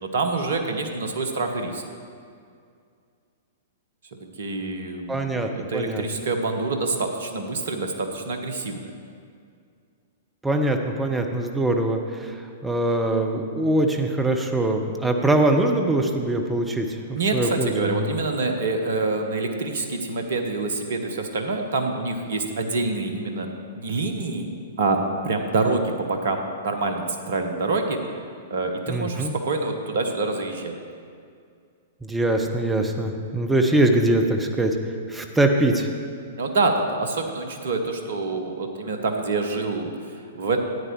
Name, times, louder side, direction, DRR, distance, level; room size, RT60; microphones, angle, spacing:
voice 1, 0.0-1.8 4.4-8.9 17.1-23.5 23.7-24.5 24.8-25.0 25.2-28.2 28.5-30.8 36.4-40.6, right 3 dB, 60° right, 5 dB, 1.1 m, -26 dB
voice 2, 5.1-6.0 10.4-18.1 28.9-29.3 32.0-34.8 35.1-35.9, right 1 dB, 10° right, 4 dB, 0.9 m, -23 dB
13.5 x 9.1 x 3.2 m, 2.3 s
figure-of-eight pair, 105°, 0 cm